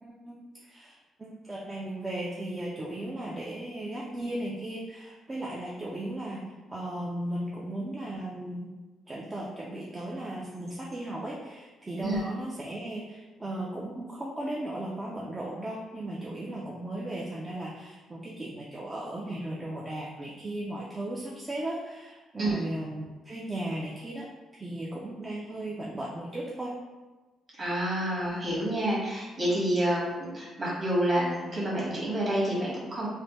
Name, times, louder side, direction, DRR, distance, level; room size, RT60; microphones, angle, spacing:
voice 1, 0.0-6.4 6.7-8.7 9.1-24.3 24.5-26.7, right 1 dB, 20° right, -4 dB, 0.4 m, -36 dB
voice 2, 27.5-33.1, right 1 dB, 40° right, -6 dB, 1.4 m, -28 dB
3.2 x 2.1 x 3.0 m, 1.2 s
cardioid pair, 90°, 0 cm